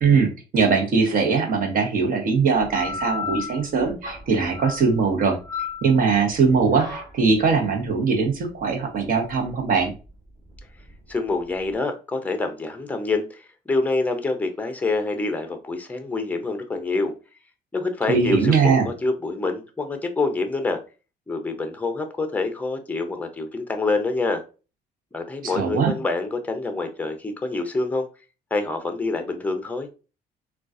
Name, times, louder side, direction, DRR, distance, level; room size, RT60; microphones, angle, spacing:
voice 1, 0.0-5.4 5.8-9.9 18.1-18.9 25.4-25.9, right 5 dB, 55° right, 3 dB, 1.0 m, -21 dB
sound 1, 2.5-11.7, left 5 dB, 20° right, 1.7 m, -36 dB
voice 2, 11.1-17.1 17.7-20.8 21.3-24.4 25.1-28.1 28.5-29.9, left 3 dB, 10° left, 7 dB, 0.6 m, -26 dB
3.7 x 2.3 x 2.4 m, 0.32 s
cardioid pair, 110°, 17 cm